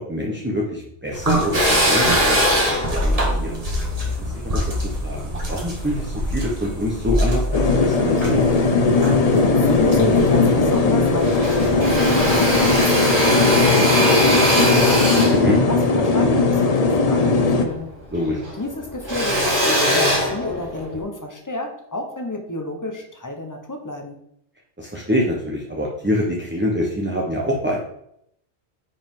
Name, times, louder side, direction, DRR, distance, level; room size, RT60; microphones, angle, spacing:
voice 1, 0.1-3.6 4.2-8.4 15.3-15.6 18.1-18.4 24.8-27.8, equal, 10° right, -2 dB, 1.1 m, -25 dB
sound 1, 1.1-12.8, equal, 35° right, 1.9 m, -27 dB
Drill, 1.5-6.1 6.6-7.8 8.3-9.2 9.6-9.7 9.9-10.9 11.2-17.9 18.1-21.0, equal, 70° right, 3.8 m, -22 dB
sound 2, 7.5-17.7, left 3 dB, 40° left, 0.7 m, -18 dB
voice 2, 9.2-17.9 18.3-24.2, left 2 dB, 15° left, 3 dB, 1.2 m, -30 dB
9.3 x 5.0 x 3.8 m, 0.73 s
omnidirectional pair, 1.1 m